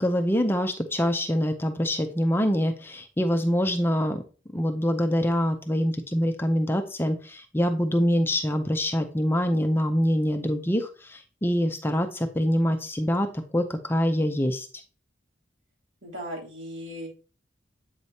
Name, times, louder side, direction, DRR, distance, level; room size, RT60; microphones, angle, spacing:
voice 1, 0.0-4.2 4.5-14.7, equal, 10° left, 6 dB, 0.5 m, -25 dB
voice 2, 16.0-17.1, equal, 75° right, -4 dB, 3.1 m, -37 dB
8.0 x 4.9 x 2.7 m, 0.36 s
head